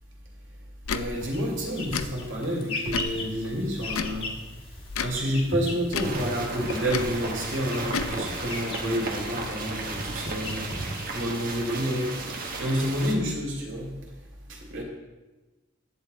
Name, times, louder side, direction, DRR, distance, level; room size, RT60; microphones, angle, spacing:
Tick / Tick-tock, 0.8-1.1 1.9-2.1 2.9-3.2 3.9-4.2 4.9-5.2 5.9-6.2 6.9-7.1 7.9-8.1, left 6 dB, 85° left, 0.6 m, -31 dB
voice 1, 0.9-4.3 5.0-10.7 11.1-13.9 14.5-14.8, equal, 60° right, -3 dB, 2.5 m, -29 dB
sound 1, 1.2-11.6, left 1 dB, 25° left, 1.4 m, -38 dB
sound 2, 6.0-13.1, right 2 dB, 40° right, 1.2 m, -34 dB
10.5 x 8.6 x 4.0 m, 1.2 s
head